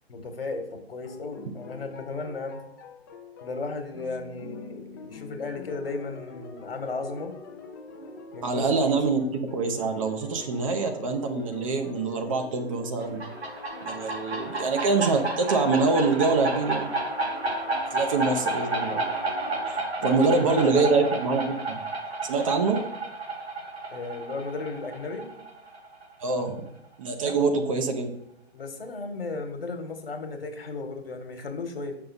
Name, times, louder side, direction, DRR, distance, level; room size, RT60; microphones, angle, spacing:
voice 1, 0.1-2.6 3.4-7.3 8.3-8.7 20.0-20.9 23.9-25.3 27.2-27.5 28.5-32.0, left 3 dB, 60° left, 6 dB, 1.4 m, -35 dB
sound 1, 1.0-19.7, left 3 dB, 20° left, 0.5 m, -44 dB
voice 2, 8.4-13.2 13.8-16.9 17.9-19.0 19.7-21.8 22.2-22.8 26.2-26.6 27.0-28.1, right 4 dB, 30° right, 5 dB, 0.8 m, -25 dB
sound 2, 13.0-26.4, right 2 dB, 75° right, 2.3 m, -31 dB
6.6 x 5.6 x 4.0 m, 0.79 s
figure-of-eight pair, 130°, 32 cm